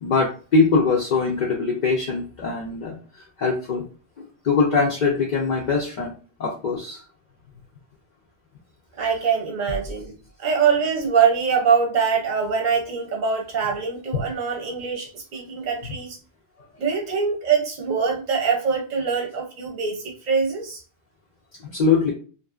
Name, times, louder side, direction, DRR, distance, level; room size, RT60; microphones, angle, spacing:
voice 1, 0.0-3.0 3.4-3.8 4.4-6.1 6.4-7.0 15.8-15.9 21.6-22.1, left 4 dB, 55° left, -2 dB, 0.6 m, -22 dB
voice 2, 9.0-10.1 10.4-16.2 16.8-20.8, right 6 dB, 50° right, 0 dB, 0.6 m, -23 dB
2.7 x 2.4 x 2.3 m, 0.38 s
omnidirectional pair, 1.2 m